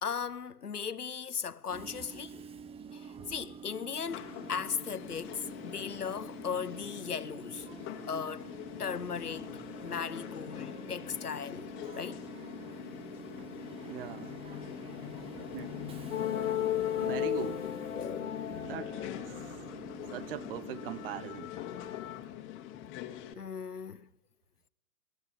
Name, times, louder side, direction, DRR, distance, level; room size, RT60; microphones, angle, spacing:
voice 1, 0.0-2.5 2.9-3.0 3.3-7.7 8.1-8.5 8.8-9.5 9.8-12.2 17.9-18.4 20.0-20.1 23.4-24.1, left 6 dB, 80° left, 1.0 m, -37 dB
Train / Subway metro underground, 1.7-21.2, right 6 dB, 10° right, 1.0 m, -48 dB
sound 1, 4.1-23.3, left 12 dB, 25° left, 2.4 m, -44 dB
voice 2, 13.8-14.4 15.4-16.0 17.0-17.7 18.5-19.8 20.1-21.5, right 11 dB, 35° right, 1.0 m, -42 dB
sound 2, 16.1-20.2 20.6-22.2, left 11 dB, 55° left, 1.3 m, -35 dB
28.5 x 19.5 x 8.8 m
figure-of-eight pair, 110°, 46 cm